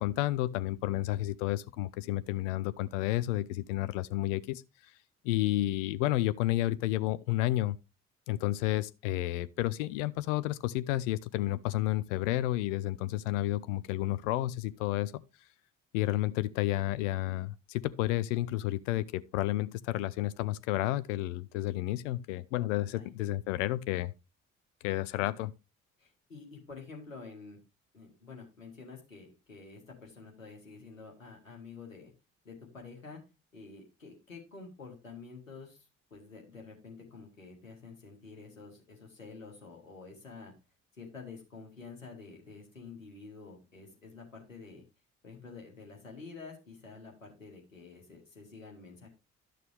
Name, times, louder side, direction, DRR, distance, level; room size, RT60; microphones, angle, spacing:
voice 1, 0.0-4.9 5.2-7.8 8.3-15.2 15.9-24.1 24.8-25.5, left 16 dB, 70° left, 0.5 m, -31 dB
voice 2, 26.0-27.6 27.9-32.1 32.4-33.2 33.5-40.5 41.0-44.8 45.2-49.1, left 4 dB, 90° left, 1.7 m, -49 dB
11.5 x 6.7 x 3.3 m
figure-of-eight pair, 45°, 38 cm